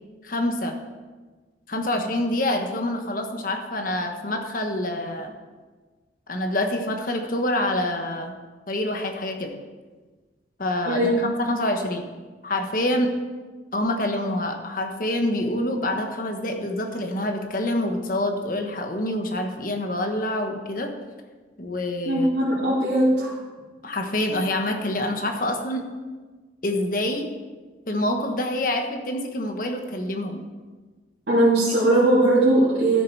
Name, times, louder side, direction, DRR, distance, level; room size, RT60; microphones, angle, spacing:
voice 1, 0.2-0.7 1.7-5.3 6.3-8.3 8.7-9.5 10.6-12.0 12.4-13.1 13.7-20.9 21.6-22.3 23.8-25.8 26.6-27.3 27.9-30.5, left 1 dB, 50° left, 4 dB, 1.2 m, -26 dB
voice 2, 10.9-11.2 22.0-23.3 31.3-33.0, right 1 dB, 70° right, -10 dB, 2.8 m, -19 dB
13.5 x 6.8 x 4.7 m, 1.3 s
head